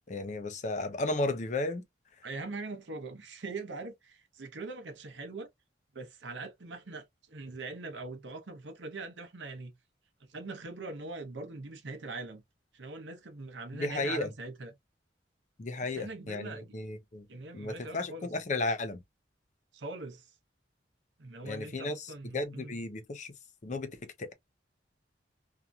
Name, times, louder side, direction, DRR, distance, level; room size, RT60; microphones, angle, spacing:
voice 1, 0.1-1.8 13.8-14.3 15.6-17.2 17.5-19.0 21.4-23.3 23.6-24.3, left 2 dB, 40° left, 0.5 m, -34 dB
voice 2, 2.2-5.5 5.9-9.7 10.2-12.4 12.7-14.8 15.9-16.7 17.3-18.3 19.7-20.3 21.2-22.8, right 3 dB, 75° right, 0.8 m, -42 dB
2.8 x 2.5 x 2.2 m
head